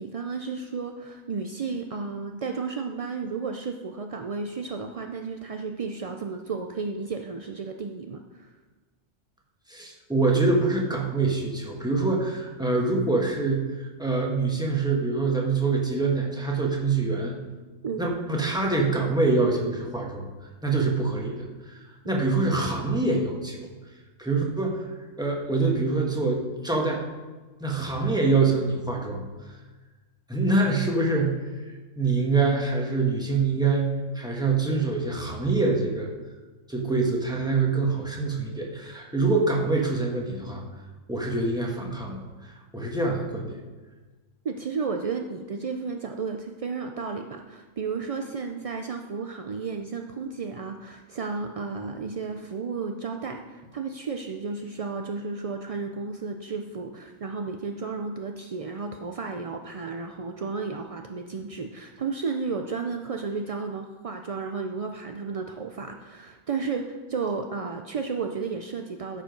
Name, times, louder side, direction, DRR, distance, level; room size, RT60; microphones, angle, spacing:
voice 1, 0.0-8.5 17.8-18.1 22.0-22.2 44.4-69.2, right 4 dB, 60° right, 4 dB, 0.3 m, -33 dB
voice 2, 9.7-17.4 18.0-20.2 20.6-23.7 24.2-24.9 25.2-27.0 27.6-29.2 30.3-31.7 32.0-36.1 36.7-40.6 41.1-43.6, right 3 dB, 5° right, -1 dB, 1.3 m, -25 dB
13.0 x 5.0 x 5.2 m, 1.3 s
omnidirectional pair, 1.3 m